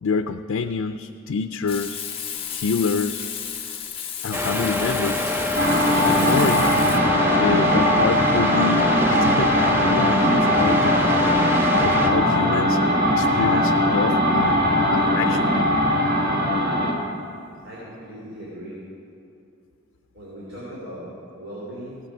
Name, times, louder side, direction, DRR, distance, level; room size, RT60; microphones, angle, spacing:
voice 1, 0.0-2.0 2.5-3.2 4.2-5.3 6.1-6.7 7.4-11.0 11.8-12.8 13.1-14.6 14.9-15.5, left 5 dB, 85° left, 8 dB, 0.4 m, -27 dB
Frying (food), 1.7-7.0, left 8 dB, 25° left, 1.0 m, -33 dB
sound 1, 4.3-12.1, left 1 dB, 10° right, 0.5 m, -26 dB
sound 2, 5.6-17.0, equal, 45° right, 1.5 m, -20 dB
voice 2, 17.6-18.8 20.1-22.0, equal, 80° right, -7 dB, 3.1 m, -38 dB
15.5 x 9.1 x 5.4 m, 2.6 s
head